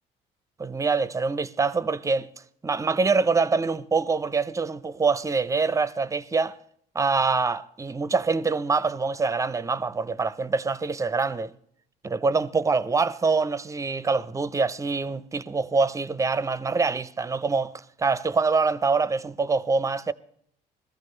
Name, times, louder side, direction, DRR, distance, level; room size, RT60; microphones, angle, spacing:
voice 1, 0.6-2.3 2.6-6.6 6.9-11.5 12.0-20.1, right 4 dB, 20° right, 0.6 m, -25 dB
21.0 x 14.5 x 3.2 m
cardioid pair, 110°, 17 cm